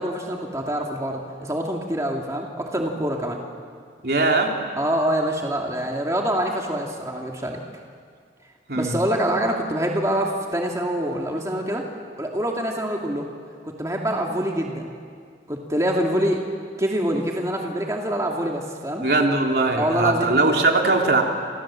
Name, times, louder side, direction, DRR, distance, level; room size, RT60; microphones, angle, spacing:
voice 1, 0.0-3.4 4.8-7.6 8.7-11.8 12.2-13.3 13.6-14.9 15.5-16.4 16.8-19.1 19.7-20.3, right 1 dB, 20° right, 0 dB, 2.3 m, -25 dB
voice 2, 4.0-4.6 8.7-9.0 19.0-21.2, right 2 dB, 65° right, 1 dB, 3.3 m, -20 dB
30.0 x 27.0 x 7.5 m, 2.1 s
head